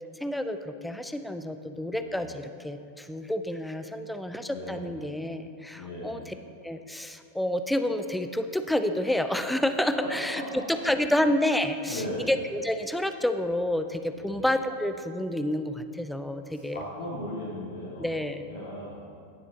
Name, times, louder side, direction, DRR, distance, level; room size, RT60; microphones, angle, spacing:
voice 1, 0.2-6.3 6.6-10.4 10.7-12.0 12.3-16.8 18.0-18.5, left 1 dB, 5° left, 8 dB, 0.5 m, -29 dB
voice 2, 1.9-2.3 4.5-4.9 5.7-6.2 10.0-11.0 11.8-12.3 14.1-14.4 16.5-18.1 18.4-19.0, left 1 dB, 65° left, -7 dB, 2.4 m, -37 dB
16.5 x 6.9 x 2.9 m, 2.4 s
figure-of-eight pair, 90°, 0 cm